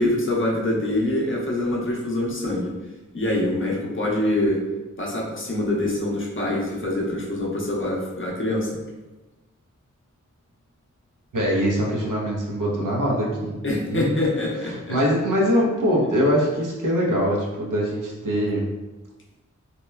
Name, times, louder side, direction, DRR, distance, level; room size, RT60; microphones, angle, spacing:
voice 1, 0.0-2.7 3.1-4.6 5.0-8.7 13.6-14.9, left 1 dB, 40° left, -2 dB, 0.6 m, -25 dB
voice 2, 11.3-13.7 13.9-14.2 14.6-18.7, equal, 80° right, -4 dB, 0.7 m, -23 dB
2.9 x 2.0 x 2.3 m, 1.1 s
wide cardioid pair, 45°, 31 cm